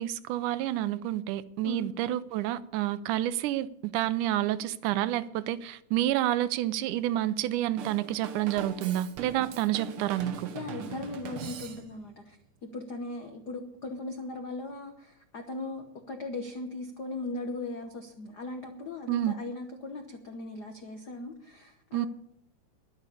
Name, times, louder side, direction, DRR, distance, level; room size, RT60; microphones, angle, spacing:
voice 1, 0.0-10.5 19.1-19.3 21.9-22.1, right 13 dB, 85° right, 2.1 m, -29 dB
Drum kit / Drum, 7.8-12.1, right 8 dB, 65° right, 1.4 m, -42 dB
voice 2, 10.5-12.4 12.7-22.1, left 2 dB, 75° left, 0.9 m, -38 dB
10.5 x 9.5 x 8.3 m
omnidirectional pair, 3.6 m